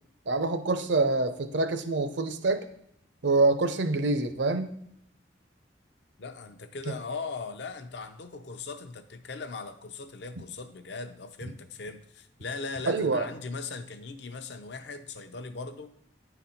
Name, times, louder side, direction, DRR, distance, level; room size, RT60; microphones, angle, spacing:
voice 1, 0.3-2.6 3.2-4.7 12.9-13.2, right 3 dB, 70° right, 9 dB, 0.6 m, -26 dB
voice 2, 6.2-15.9, left 4 dB, 65° left, 9 dB, 0.6 m, -39 dB
9.7 x 4.0 x 4.3 m, 0.75 s
head